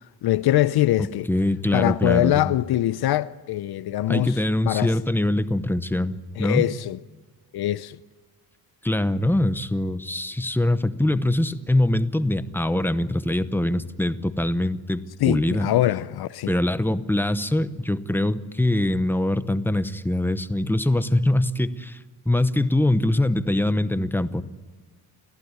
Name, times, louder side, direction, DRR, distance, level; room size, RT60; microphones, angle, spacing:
voice 1, 0.2-1.3 1.7-4.4 4.7-4.9 6.4-7.0 7.5-8.0 15.2-16.5, left 14 dB, 75° left, 0.7 m, -23 dB
voice 2, 1.0-2.5 4.1-6.6 8.8-15.7 16.5-22.0 22.3-24.4, left 1 dB, 5° left, 0.8 m, -23 dB
30.0 x 15.0 x 9.6 m
wide cardioid pair, 175°, 38 cm